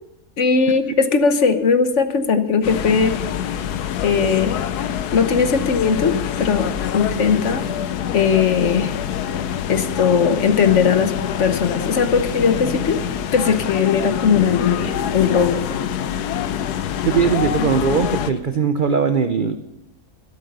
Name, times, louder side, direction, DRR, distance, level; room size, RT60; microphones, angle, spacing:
voice 1, 0.4-3.1 4.0-4.6 5.1-7.6 8.1-8.9 9.7-11.1 11.4-13.0 13.3-15.6, left 5 dB, 55° left, 9 dB, 1.2 m, -18 dB
sound 1, 2.6-18.3, left 9 dB, 85° left, 1.3 m, -25 dB
voice 2, 17.0-19.6, right 6 dB, 45° right, 8 dB, 0.6 m, -19 dB
13.0 x 12.5 x 5.4 m, 0.85 s
omnidirectional pair, 1.6 m